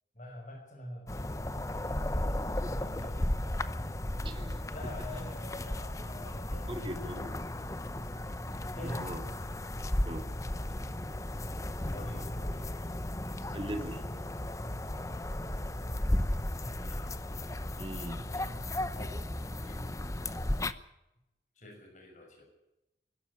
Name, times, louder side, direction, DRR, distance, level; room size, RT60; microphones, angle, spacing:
voice 1, 0.1-1.4 2.6-3.2 4.7-8.1 8.7-9.3 11.8-12.7 16.7-17.2 18.3-18.6 18.9-19.2 19.5-19.8 21.5-22.4, left 1 dB, 45° left, 1 dB, 6.0 m, -47 dB
sound 1, 1.1-20.7, left 1 dB, 20° left, 0.8 m, -35 dB
voice 2, 4.2-4.6 5.1-5.3 6.7-7.4 8.8-9.2 10.1-10.3 13.5-14.0 17.8-18.2, right 1 dB, 30° right, 4 dB, 2.7 m, -40 dB
22.5 x 12.5 x 9.8 m, 0.90 s
head